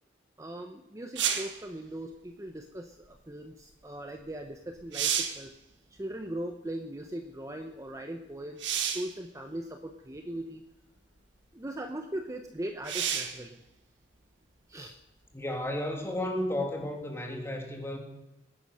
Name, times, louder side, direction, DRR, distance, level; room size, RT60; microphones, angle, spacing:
voice 1, 0.4-5.5 5.9-10.6 11.5-13.6 14.7-15.0, right 1 dB, 15° right, 5 dB, 0.8 m, -39 dB
sound 1, 1.1-1.6 4.3-4.4 4.8-5.5 8.6-9.1 10.1-10.2 12.8-13.4 17.0-17.1, right 8 dB, 80° right, 1.6 m, -30 dB
voice 2, 15.3-18.0, left 1 dB, 15° left, 1 dB, 2.9 m, -33 dB
20.0 x 11.0 x 6.5 m, 0.95 s
head